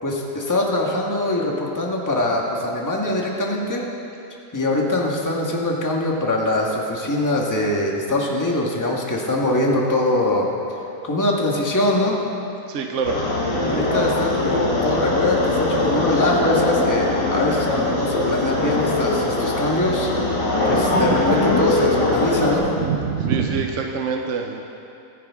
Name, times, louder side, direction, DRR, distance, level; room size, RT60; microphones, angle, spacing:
voice 1, 0.0-3.8 4.5-10.5 11.0-12.2 13.6-20.1 20.6-22.7, left 1 dB, 10° left, -2 dB, 1.4 m, -22 dB
voice 2, 12.7-13.2 20.9-21.1 22.8-24.6, right 6 dB, 55° right, 3 dB, 1.0 m, -25 dB
sound 1, 13.0-22.6, left 2 dB, 90° left, 2.9 m, -21 dB
23.5 x 10.0 x 3.6 m, 2.7 s
omnidirectional pair, 1.8 m